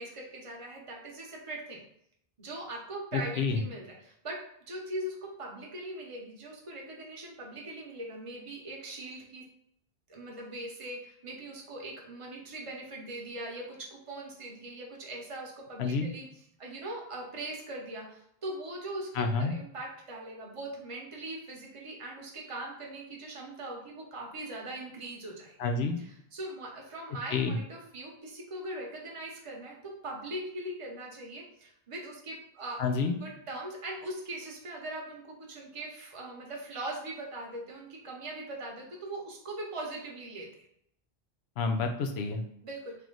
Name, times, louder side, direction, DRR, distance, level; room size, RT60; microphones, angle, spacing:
voice 1, 0.0-1.8 2.4-4.4 4.7-9.4 10.1-25.6 26.0-32.8 33.2-40.5 42.6-43.0, right 1 dB, 35° right, -1 dB, 0.9 m, -41 dB
voice 2, 3.1-3.6 15.8-16.1 19.2-19.5 25.6-26.0 27.3-27.6 32.8-33.2 41.6-42.4, left 4 dB, 85° left, 4 dB, 0.9 m, -29 dB
3.3 x 3.0 x 3.8 m, 0.70 s
omnidirectional pair, 1.0 m